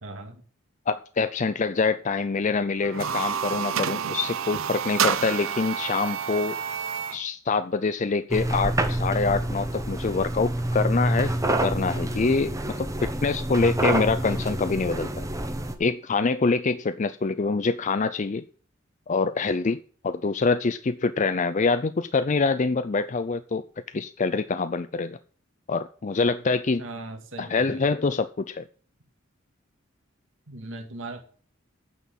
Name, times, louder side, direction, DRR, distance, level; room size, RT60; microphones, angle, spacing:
voice 1, 0.0-0.4 26.8-27.8 30.5-31.2, right 2 dB, 70° right, 4 dB, 2.4 m, -38 dB
voice 2, 0.9-6.6 7.1-15.3 15.8-18.4 19.1-19.8 20.0-23.6 23.9-25.2 25.7-26.8 27.4-28.6, left 4 dB, 35° left, 12 dB, 0.5 m, -25 dB
sound 1, 2.8-7.2, right 7 dB, 90° right, 0.8 m, -29 dB
sound 2, 8.3-15.8, right 1 dB, 15° right, 1.2 m, -27 dB
9.4 x 6.2 x 7.3 m, 0.43 s
head